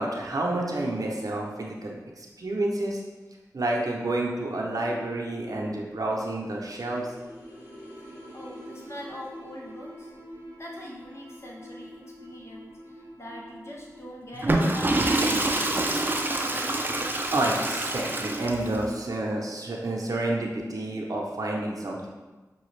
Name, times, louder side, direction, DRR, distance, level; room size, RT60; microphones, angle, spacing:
voice 1, 0.0-3.0 3.5-7.1 17.3-22.1, right 2 dB, 70° right, -2 dB, 0.7 m, -29 dB
sound 1, 4.6-14.1, equal, 80° left, 1.2 m, -46 dB
voice 2, 8.0-10.1 10.5-15.0, left 1 dB, 45° left, -2 dB, 0.6 m, -43 dB
Water / Toilet flush, 14.3-18.8, right 2 dB, 30° right, 0.5 m, -26 dB
5.7 x 2.3 x 3.2 m, 1.2 s
cardioid pair, 50°, 6 cm